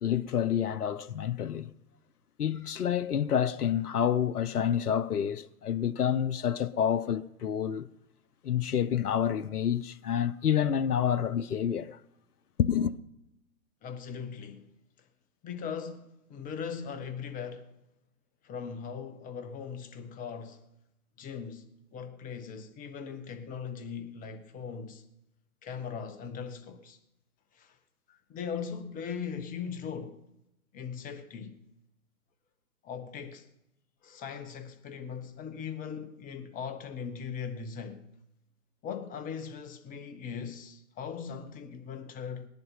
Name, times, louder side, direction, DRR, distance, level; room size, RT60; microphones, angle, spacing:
voice 1, 0.0-1.7 2.4-7.9 8.4-12.0 12.6-12.9, left 9 dB, 80° left, 0.8 m, -28 dB
voice 2, 13.8-14.7 15.4-17.7 18.4-20.6 21.2-25.0 25.6-27.0 27.5-27.7 28.1-30.2 30.7-31.6 32.8-33.5 34.0-38.1 38.8-42.5, left 6 dB, 20° left, 1.2 m, -39 dB
18.5 x 11.0 x 5.6 m
figure-of-eight pair, 125°, 45 cm